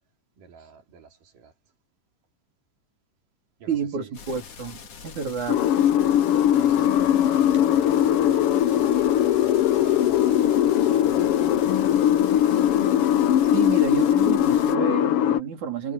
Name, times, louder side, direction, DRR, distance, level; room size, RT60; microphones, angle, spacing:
voice 1, 0.4-1.5 3.6-4.4 5.2-5.3 5.7-5.8 6.5-12.2, right 6 dB, 90° right, 4.8 m, -47 dB
voice 2, 3.7-5.6 13.5-15.9, right 6 dB, 65° right, 4.9 m, -30 dB
sound 1, 4.1-14.8, left 6 dB, 50° left, 3.0 m, -43 dB
sound 2, 5.5-15.4, left 11 dB, 75° left, 1.3 m, -20 dB
omnidirectional pair, 3.7 m